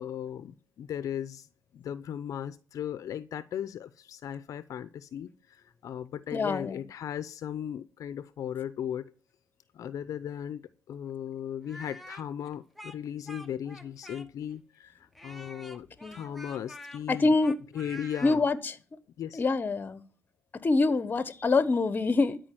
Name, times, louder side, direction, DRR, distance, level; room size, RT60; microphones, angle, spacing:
voice 1, 0.0-1.5 1.7-9.1 9.7-17.3 17.7-18.5 19.2-19.4, left 9 dB, 65° left, 0.7 m, -37 dB
voice 2, 6.3-6.8 16.0-16.3 17.1-17.6 18.2-18.7 19.3-20.0 20.6-22.4, left 3 dB, 30° left, 1.2 m, -25 dB
Speech, 11.6-14.5 15.2-18.4, left 1 dB, ahead, 1.2 m, -47 dB
13.0 x 5.2 x 9.1 m
cardioid pair, 105°, 6 cm